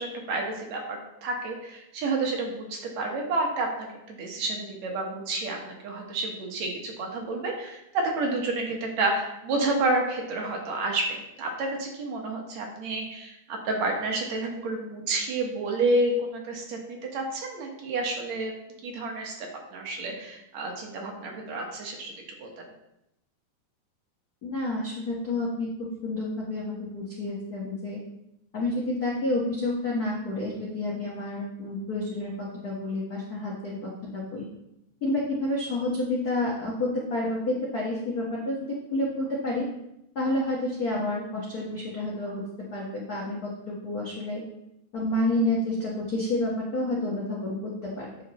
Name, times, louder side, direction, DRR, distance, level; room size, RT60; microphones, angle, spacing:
voice 1, 0.0-18.5 18.8-22.1 22.4-22.5, right 2 dB, 65° right, 1 dB, 2.2 m, -30 dB
voice 2, 24.4-25.7 26.0-28.0 28.5-34.5 35.0-38.6 38.9-39.7 40.1-42.4 42.7-44.4 44.9-48.1, left 2 dB, 75° left, -4 dB, 0.8 m, -29 dB
8.5 x 6.5 x 3.0 m, 0.83 s
omnidirectional pair, 3.6 m